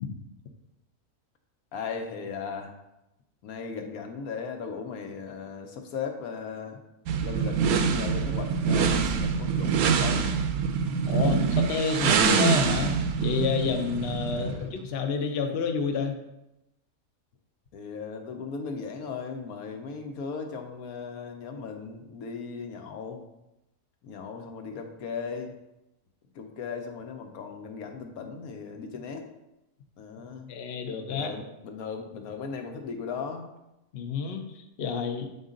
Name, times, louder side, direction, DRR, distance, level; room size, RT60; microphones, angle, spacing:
voice 1, 1.7-2.7 3.4-6.8 7.2-10.3 14.3-14.8 17.7-23.2 24.0-25.5 26.3-29.2 30.0-30.5 31.1-33.5, left 5 dB, 75° left, 4 dB, 1.2 m, -37 dB
sound 1, 7.1-14.6, right 6 dB, 80° right, 1.1 m, -25 dB
voice 2, 11.1-16.2 30.5-31.3 33.9-35.3, left 5 dB, 55° left, 5 dB, 0.8 m, -29 dB
7.9 x 3.9 x 3.7 m, 0.90 s
omnidirectional pair, 1.6 m